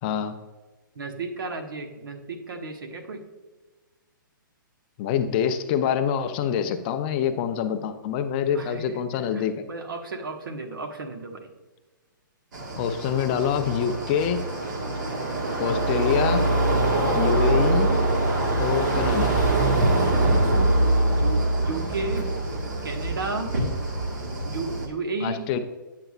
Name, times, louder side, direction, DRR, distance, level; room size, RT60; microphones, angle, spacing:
voice 1, 0.0-0.4 5.0-9.7 12.8-14.4 15.6-16.5 17.1-17.9 18.5-19.4 25.2-25.6, left 8 dB, 25° left, 8 dB, 0.5 m, -25 dB
voice 2, 0.9-3.2 8.5-9.0 9.3-11.5 14.9-15.3 18.2-18.5 21.2-22.3 22.8-23.5 24.4-25.4, right 3 dB, 80° right, 5 dB, 1.3 m, -34 dB
sound 1, 12.5-24.9, right 2 dB, 60° right, 1.7 m, -24 dB
8.9 x 6.7 x 2.4 m, 1.2 s
hypercardioid pair, 155°, 11 cm